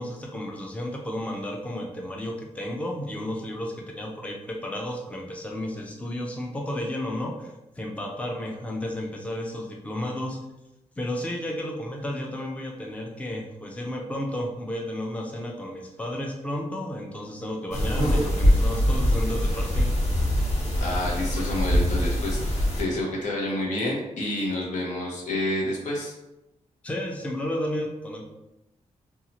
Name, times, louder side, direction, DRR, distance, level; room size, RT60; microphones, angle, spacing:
voice 1, 0.0-10.4 11.0-20.0 26.8-28.2, left 1 dB, 10° left, 0 dB, 0.4 m, -32 dB
sound 1, 17.7-22.8, equal, 65° left, 1.3 m, -23 dB
voice 2, 20.8-26.1, left 1 dB, 85° left, -2 dB, 0.8 m, -29 dB
2.7 x 2.3 x 2.8 m, 0.92 s
cardioid pair, 100°, 12 cm